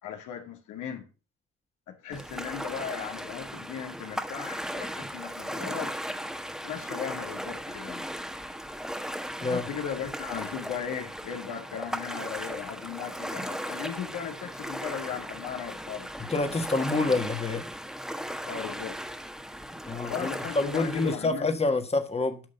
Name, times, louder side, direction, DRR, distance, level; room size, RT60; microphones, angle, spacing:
voice 1, 0.0-1.1 1.9-5.9 6.6-8.1 9.4-16.1 18.5-19.0 20.1-21.5, left 8 dB, 90° left, 2.3 m, -37 dB
Ocean, 2.1-21.1, equal, ahead, 1.3 m, -37 dB
voice 2, 16.3-17.7 19.9-20.3 20.5-22.4, left 3 dB, 20° left, 1.6 m, -27 dB
9.4 x 6.2 x 6.8 m
cardioid pair, 90°, 30 cm